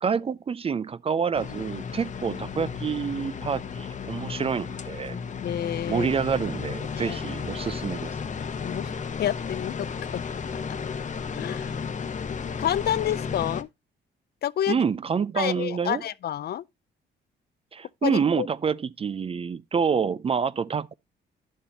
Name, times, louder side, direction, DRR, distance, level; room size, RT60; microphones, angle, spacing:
voice 1, 0.0-5.2 5.9-8.1 14.7-16.0 17.7-20.9, right 6 dB, 30° right, 0.4 m, -27 dB
sound 1, 1.3-13.6, left 6 dB, 40° left, 0.9 m, -34 dB
voice 2, 5.4-6.1 6.9-7.2 8.6-8.9 9.2-9.9 10.1-10.2 11.4-11.8 12.6-13.7 14.4-14.8 15.4-16.6 18.0-18.5, left 11 dB, 55° left, 0.4 m, -29 dB
10.5 x 7.2 x 2.7 m
cardioid pair, 90°, 20 cm